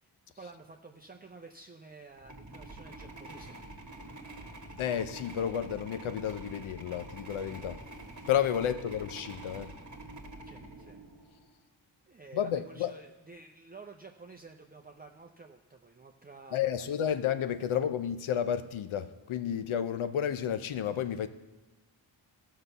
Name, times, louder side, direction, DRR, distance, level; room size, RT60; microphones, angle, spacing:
voice 1, 0.0-3.6 8.7-8.8 10.4-11.0 12.1-17.2 17.6-17.9, right 4 dB, 20° right, 2 dB, 0.7 m, -51 dB
sound 1, 2.2-11.5, right 2 dB, 35° right, 1.5 m, -46 dB
voice 2, 4.8-7.8 8.3-9.7 12.3-12.9 16.5-21.3, left 9 dB, 80° left, 12 dB, 0.8 m, -31 dB
14.5 x 5.7 x 6.8 m, 1.1 s
cardioid pair, 75°, 48 cm